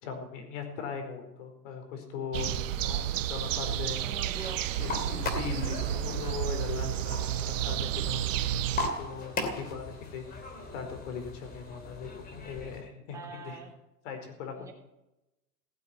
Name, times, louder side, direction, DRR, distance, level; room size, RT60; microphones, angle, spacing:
voice 1, 0.0-2.6 2.8-4.0 4.8-8.3 9.0-13.6 14.0-14.7, left 6 dB, 50° left, 6 dB, 4.6 m, -39 dB
sound 1, 2.3-8.9, right 11 dB, 50° right, 1.1 m, -31 dB
voice 2, 4.0-4.7 9.1-9.2 13.1-13.7 14.6-14.7, right 3 dB, 5° right, -2 dB, 3.3 m, -43 dB
sound 2, 4.4-12.8, left 3 dB, 20° left, 2.8 m, -39 dB
16.5 x 8.4 x 9.5 m, 0.93 s
hypercardioid pair, 145°, 48 cm